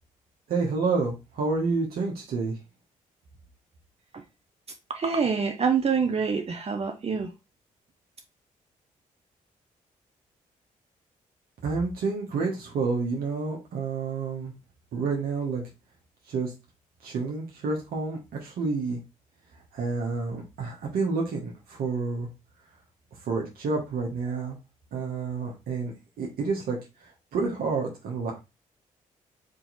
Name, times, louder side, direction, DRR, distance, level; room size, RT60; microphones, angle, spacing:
voice 1, 0.5-2.6 11.6-14.5 14.9-15.6 16.3-16.5 17.0-19.0 19.7-22.3 23.3-24.6 24.9-26.8 27.3-28.4, right 4 dB, 75° right, 1.2 m, -29 dB
voice 2, 4.9-7.3, right 5 dB, 40° right, 0.8 m, -26 dB
3.7 x 2.9 x 4.0 m
supercardioid pair, 55°, 15 cm